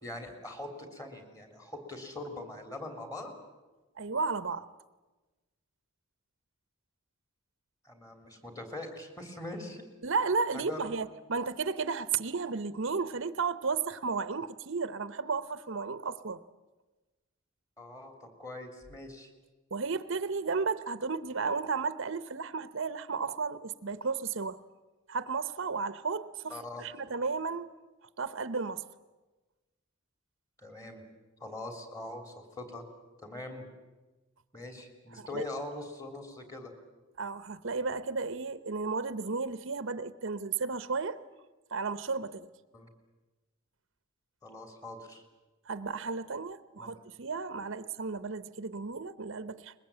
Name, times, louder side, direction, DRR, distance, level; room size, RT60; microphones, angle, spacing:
voice 1, 0.0-3.3 7.8-9.8 10.5-10.9 17.8-19.3 26.5-26.8 30.6-31.0 31.4-32.8 33.2-33.6 34.5-36.7 42.7-42.9 44.4-45.2 46.8-46.9, left 2 dB, 15° left, 5 dB, 3.4 m, -42 dB
voice 2, 4.0-4.7 10.0-16.4 19.7-24.6 25.1-27.7 28.2-28.8 35.2-35.4 37.2-41.2 41.7-42.5 45.7-49.7, right 4 dB, 60° right, 13 dB, 0.8 m, -33 dB
22.5 x 21.0 x 8.9 m, 1.2 s
head